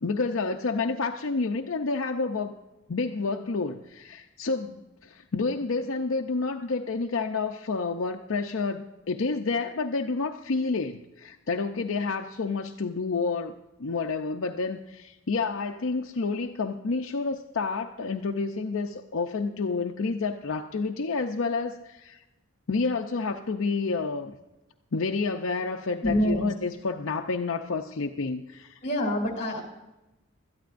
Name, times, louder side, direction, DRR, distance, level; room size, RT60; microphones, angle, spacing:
voice 1, 0.0-2.6 2.9-22.2 22.7-24.3 24.9-28.8, left 4 dB, 70° left, 4 dB, 0.6 m, -29 dB
voice 2, 26.0-26.5 28.8-29.6, equal, 30° left, 1 dB, 2.9 m, -26 dB
21.0 x 13.0 x 2.5 m, 0.98 s
head